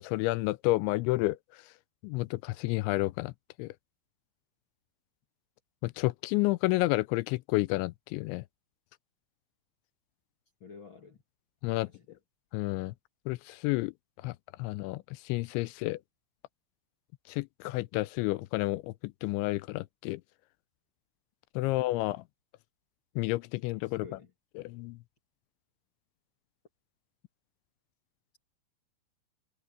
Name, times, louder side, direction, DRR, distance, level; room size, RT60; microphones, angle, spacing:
voice 1, 0.0-1.4 2.0-3.3 3.6-3.7 5.8-8.4 11.6-11.9 12.5-12.9 13.3-13.9 14.2-14.3 14.6-16.0 17.3-20.2 21.6-22.2 23.2-24.1 24.7-25.0, left 20 dB, 85° left, 2.8 m, -30 dB
voice 2, 10.6-11.2 11.8-12.2 23.8-24.3, left 5 dB, 50° left, 1.6 m, -51 dB
omnidirectional pair, 5.5 m